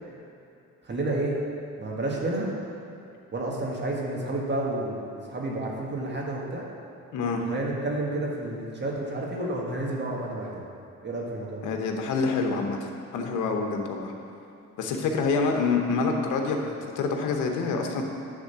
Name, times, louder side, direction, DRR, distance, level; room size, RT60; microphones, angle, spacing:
voice 1, 0.9-1.4 1.8-2.5 3.3-6.7 7.5-10.6 11.0-11.7, right 2 dB, 35° right, -2 dB, 1.7 m, -30 dB
voice 2, 7.1-7.4 11.6-14.1 14.8-18.0, left 4 dB, 85° left, 2 dB, 1.0 m, -27 dB
10.0 x 3.8 x 6.9 m, 2.6 s
cardioid pair, 90°, 30 cm